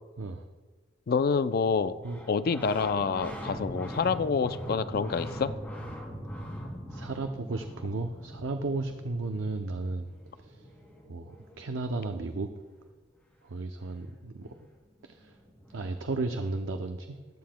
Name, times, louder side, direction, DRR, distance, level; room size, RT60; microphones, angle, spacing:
voice 1, 1.1-2.0 2.3-5.5, left 5 dB, 50° left, 13 dB, 0.4 m, -27 dB
sound 1, 2.0-12.5 14.5-14.6 14.8-16.6, equal, 10° left, 2.2 m, -42 dB
voice 2, 2.0-2.6 6.9-10.1 10.4-10.7 11.1-12.5 13.4-14.5 15.0-15.4 15.7-17.2, right 3 dB, 90° right, 6 dB, 0.6 m, -34 dB
15.0 x 10.5 x 2.2 m, 1.3 s
head